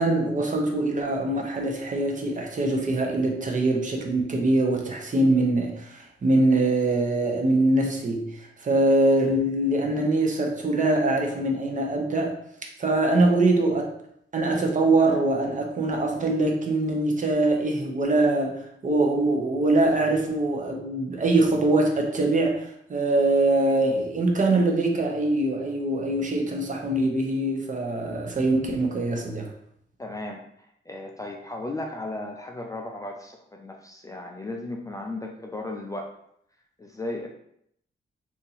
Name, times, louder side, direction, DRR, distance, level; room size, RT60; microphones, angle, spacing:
voice 1, 0.0-12.4 12.8-13.9 14.3-29.5, right 2 dB, 40° right, 1 dB, 0.7 m, -23 dB
voice 2, 30.0-36.1 36.8-37.3, left 2 dB, 15° left, 1 dB, 0.3 m, -35 dB
2.8 x 2.5 x 4.0 m, 0.71 s
cardioid pair, 105°, 20 cm